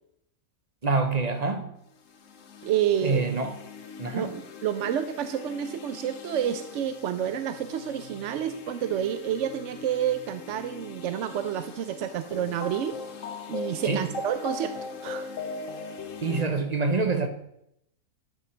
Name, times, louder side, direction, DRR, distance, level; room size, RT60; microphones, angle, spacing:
voice 1, 0.8-1.7 3.0-3.5 4.0-4.3 13.8-14.1 16.2-17.3, right 3 dB, 35° right, 0.8 m, -26 dB
sound 1, 2.1-16.4, left 4 dB, 60° left, 1.2 m, -40 dB
voice 2, 2.6-3.2 4.1-13.0 13.5-14.7 15.0-15.3, right 9 dB, 65° right, 0.8 m, -29 dB
11.5 x 5.6 x 6.2 m
omnidirectional pair, 1.5 m